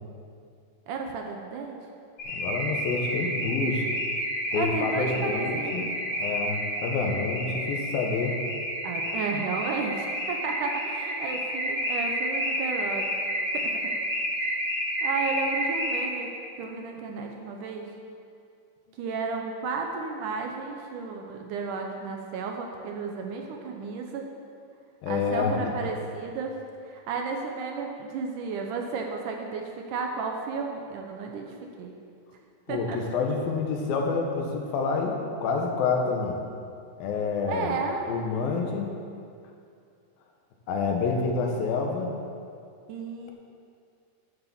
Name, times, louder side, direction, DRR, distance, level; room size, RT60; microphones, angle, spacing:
voice 1, 0.9-1.8 4.5-5.9 8.8-13.1 13.5-13.9 15.0-16.3 16.6-17.9 19.0-24.3 25.1-26.6 26.8-31.5 31.8-31.9 32.7-33.0 37.5-38.0 42.9-43.3, right 4 dB, 70° right, 2 dB, 2.2 m, -33 dB
Car / Alarm, 2.2-16.3, equal, 40° left, 4.0 m, -30 dB
voice 2, 2.3-3.8 4.5-5.9 6.2-8.4 25.0-25.9 32.7-35.2 35.4-36.4 37.0-37.8 38.1-38.9 40.7-42.1, left 4 dB, 80° left, 1 dB, 3.0 m, -28 dB
9.8 x 7.4 x 7.2 m, 2.4 s
omnidirectional pair, 4.1 m